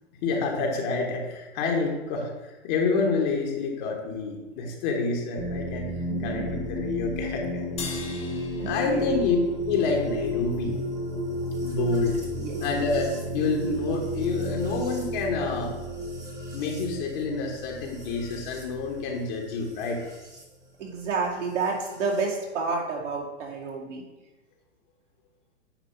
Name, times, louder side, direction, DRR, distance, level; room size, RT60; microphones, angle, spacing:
voice 1, 0.2-7.7 8.6-9.4 9.7-10.8 11.6-12.2 12.6-15.7 16.5-20.0, left 4 dB, 40° left, 1 dB, 1.2 m, -28 dB
sound 1, 5.4-20.4 21.6-22.2, equal, 10° right, 1.2 m, -33 dB
voice 2, 6.1-6.6 8.6-9.1 12.3-12.6 20.8-24.0, right 4 dB, 75° right, -3 dB, 2.4 m, -30 dB
sound 2, 7.8-10.4, left 4 dB, 15° left, 0.9 m, -41 dB
9.0 x 3.0 x 5.5 m, 1.1 s
hypercardioid pair, 135°, 37 cm